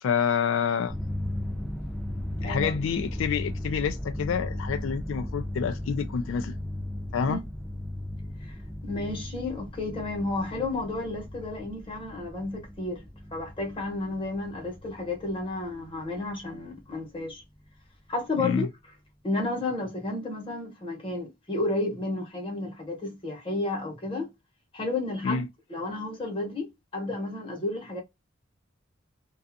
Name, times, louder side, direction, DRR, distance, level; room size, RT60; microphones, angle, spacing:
voice 1, 0.0-0.9 2.4-6.6 7.1-7.4 18.4-18.7 25.2-25.5, left 6 dB, 85° left, 0.3 m, -28 dB
sound 1, 0.9-16.9, left 1 dB, ahead, 0.4 m, -37 dB
voice 2, 2.4-2.8 7.3-7.4 8.4-8.6 8.8-17.4 18.1-18.7 19.2-24.3 24.7-28.0, left 2 dB, 25° left, 0.9 m, -32 dB
2.4 x 2.3 x 2.6 m
head